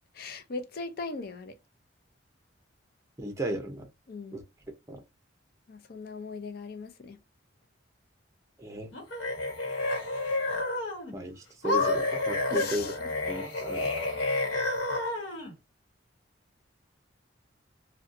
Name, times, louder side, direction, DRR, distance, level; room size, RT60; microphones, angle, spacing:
voice 1, 0.1-1.6 4.1-4.4 5.7-7.2 12.5-13.0 13.7-14.0, left 4 dB, 50° left, 0.5 m, -39 dB
voice 2, 3.2-3.9 4.3-4.4 4.9-5.0 8.6-8.9 11.1-12.9 13.3-13.9, equal, 15° right, 0.6 m, -35 dB
sound 1, 8.9-11.1 11.6-15.5, left 2 dB, 75° left, 1.2 m, -30 dB
2.6 x 2.2 x 2.5 m
head